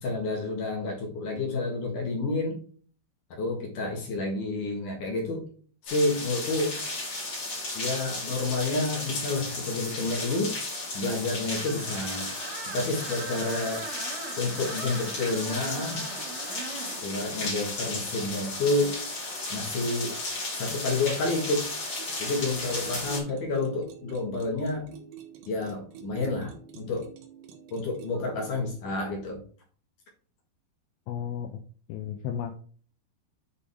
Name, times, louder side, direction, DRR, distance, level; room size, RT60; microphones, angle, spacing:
voice 1, 0.0-2.6 3.3-5.5 5.8-6.8 7.7-10.6 10.9-12.3 12.7-13.9 14.4-16.0 17.0-19.0 19.5-20.2 20.5-21.7 22.2-24.9 25.5-27.1 27.7-29.4, left 2 dB, 55° left, -1 dB, 2.7 m, -29 dB
sound 1, 5.9-23.2, left 2 dB, 30° left, 3.1 m, -34 dB
Screech, 11.5-17.0, right 4 dB, 50° right, 2.7 m, -40 dB
sound 2, 22.0-29.2, right 6 dB, 75° right, 3.3 m, -48 dB
voice 2, 31.1-31.5 31.9-32.6, left 9 dB, 80° left, 4 dB, 2.9 m, -33 dB
8.6 x 5.3 x 3.6 m, 0.43 s
omnidirectional pair, 5.3 m